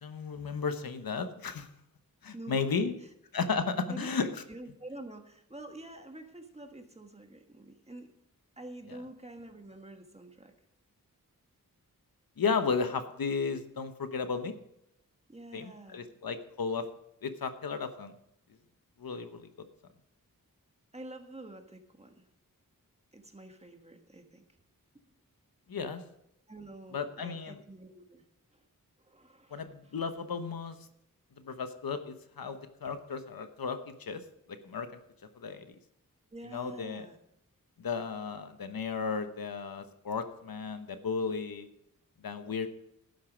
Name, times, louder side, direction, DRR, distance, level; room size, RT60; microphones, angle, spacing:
voice 1, 0.0-1.7 2.2-2.9 3.3-4.3 8.9-9.0 12.4-14.5 15.5-16.9 17.2-18.1 19.0-19.5 25.7-26.0 26.9-27.6 29.5-30.8 31.4-34.2 34.5-34.9 35.4-35.7 36.4-37.1 37.8-41.7 42.2-42.7, left 5 dB, 85° left, 9 dB, 1.0 m, -34 dB
voice 2, 2.3-2.7 3.9-8.1 8.6-10.5 15.3-16.1 20.9-22.3 23.1-24.4 26.5-28.2 28.5-28.6 29.0-29.9 36.3-37.2, right 1 dB, 20° right, 5 dB, 1.4 m, -47 dB
12.0 x 9.2 x 5.0 m, 0.78 s
wide cardioid pair, 95°, 34 cm